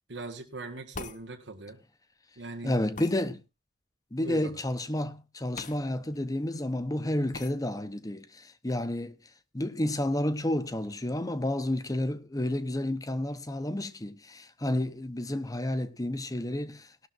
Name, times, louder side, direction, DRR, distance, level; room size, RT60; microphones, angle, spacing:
voice 1, 0.1-1.8 2.4-2.8 4.2-4.5, right 2 dB, 90° right, 1.8 m, -40 dB
sound 1, 0.9-1.2 3.0-3.2 5.6-5.8 6.1-6.2 7.3-7.5, left 4 dB, 45° left, 1.0 m, -41 dB
voice 2, 2.6-3.4 4.1-9.2 9.5-17.1, left 1 dB, 20° left, 0.9 m, -31 dB
18.5 x 12.0 x 2.6 m
head